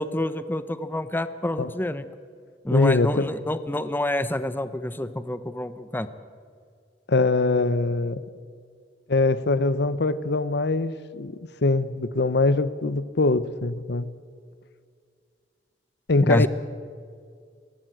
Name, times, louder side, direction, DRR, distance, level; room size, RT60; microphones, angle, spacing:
voice 1, 0.0-2.0 2.6-6.1 16.2-16.5, left 1 dB, 10° left, 12 dB, 0.8 m, -27 dB
voice 2, 2.7-3.3 7.1-8.2 9.1-14.1 16.1-16.5, left 3 dB, 65° left, 16 dB, 0.8 m, -22 dB
23.0 x 17.5 x 7.7 m, 2.1 s
head